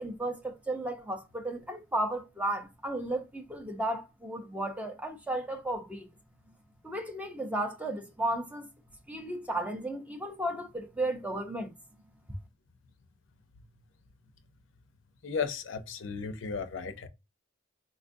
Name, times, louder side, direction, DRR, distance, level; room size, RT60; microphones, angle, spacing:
voice 1, 0.0-6.1 6.8-8.7 9.1-11.7, right 1 dB, 5° right, 0.5 m, -34 dB
voice 2, 15.2-17.1, left 5 dB, 70° left, 0.5 m, -35 dB
4.3 x 2.3 x 2.5 m
head